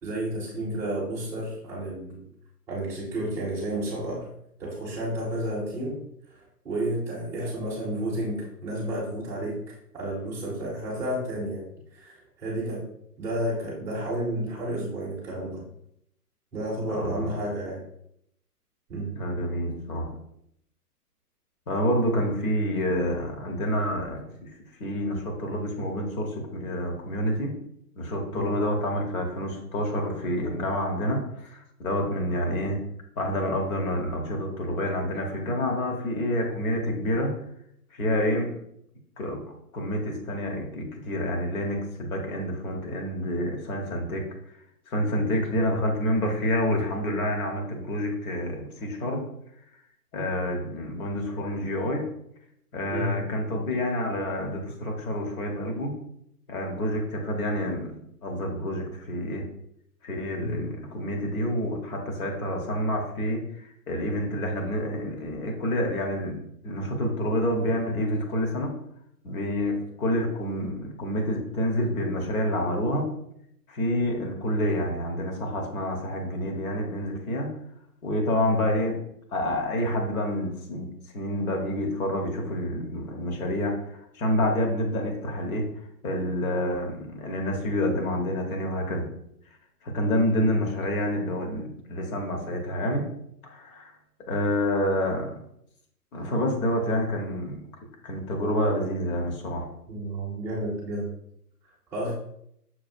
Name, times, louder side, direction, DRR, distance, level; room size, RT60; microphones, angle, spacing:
voice 1, 0.0-2.2 2.7-4.3 4.6-6.0 6.3-9.6 9.9-11.7 11.9-12.8 13.2-15.6 16.5-17.8 18.9-19.1 28.3-28.5 52.9-53.1 60.4-60.6 99.9-101.1 101.9-102.1, right 1 dB, 5° right, -7 dB, 0.5 m, -31 dB
voice 2, 16.9-17.3 19.1-20.2 21.7-24.5 24.8-27.5 28.0-32.8 33.2-37.3 37.9-38.5 39.2-39.4 39.7-44.3 44.9-49.2 50.1-52.0 52.7-55.9 56.5-59.4 60.0-68.7 69.2-73.1 73.7-77.5 78.0-79.0 79.3-85.7 86.0-89.1 89.8-93.0 93.5-93.9 94.3-95.4 96.1-97.7 98.0-99.7, equal, 65° left, 2 dB, 1.3 m, -28 dB
6.0 x 2.5 x 2.6 m, 0.75 s
hypercardioid pair, 135°, 47 cm